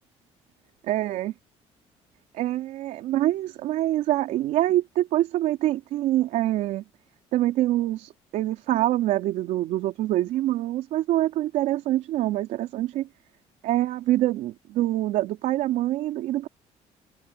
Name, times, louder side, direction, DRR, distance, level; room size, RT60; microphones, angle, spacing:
voice 1, 0.8-1.3 2.3-6.8 7.3-13.1 13.6-16.5, right 14 dB, 80° right, 3.7 m, -25 dB
cardioid pair, 165°, 12 cm